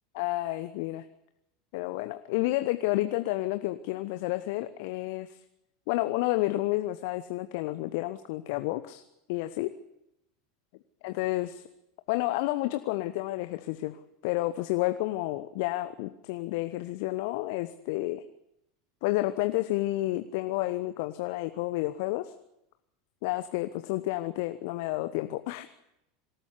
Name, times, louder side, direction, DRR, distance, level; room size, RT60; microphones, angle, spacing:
voice 1, 0.2-1.0 1.7-5.4 5.9-9.0 9.3-9.7 11.0-11.6 12.1-14.0 14.2-18.2 19.0-22.3 23.2-25.7, left 17 dB, 55° left, 11 dB, 1.0 m, -30 dB
25.0 x 14.0 x 9.6 m, 0.86 s
figure-of-eight pair, 80°, 0 cm